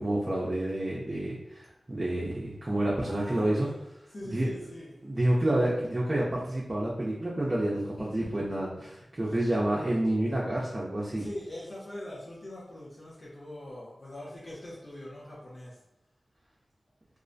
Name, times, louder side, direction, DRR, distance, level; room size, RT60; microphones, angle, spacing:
voice 1, 0.0-3.7 4.3-4.5 5.0-11.3, right 1 dB, 35° right, -5 dB, 0.5 m, -29 dB
voice 2, 3.0-3.8 4.1-4.9 8.0-8.4 9.3-9.4 11.1-15.8, left 1 dB, 60° left, -7 dB, 0.7 m, -42 dB
2.4 x 2.1 x 2.5 m, 0.83 s
cardioid pair, 50°, 0 cm